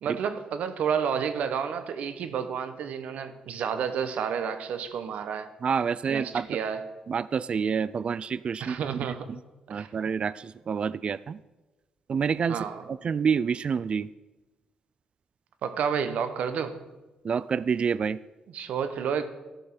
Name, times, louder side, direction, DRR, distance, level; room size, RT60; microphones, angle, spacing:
voice 1, 0.0-5.5 6.1-6.9 8.6-9.3 9.7-9.9 12.5-12.8 15.6-16.9 18.5-19.2, right 7 dB, 75° right, 10 dB, 1.0 m, -30 dB
voice 2, 5.6-6.6 7.1-8.8 9.3-9.4 9.7-11.4 12.1-12.6 12.9-14.1 17.2-18.2, right 6 dB, 50° right, 18 dB, 0.4 m, -28 dB
13.0 x 5.5 x 6.0 m, 1.1 s
cardioid pair, 70°, 2 cm